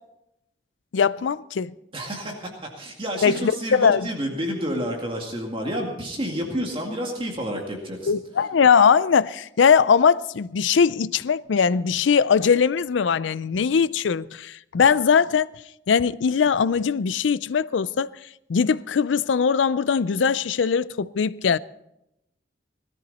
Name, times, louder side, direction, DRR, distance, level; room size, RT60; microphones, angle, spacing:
voice 1, 0.9-1.7 3.2-4.1 8.1-15.5 15.9-18.1 18.5-21.6, left 6 dB, 85° left, 0.4 m, -20 dB
voice 2, 1.9-8.1, equal, 30° right, 2.1 m, -30 dB
19.0 x 13.5 x 4.2 m
head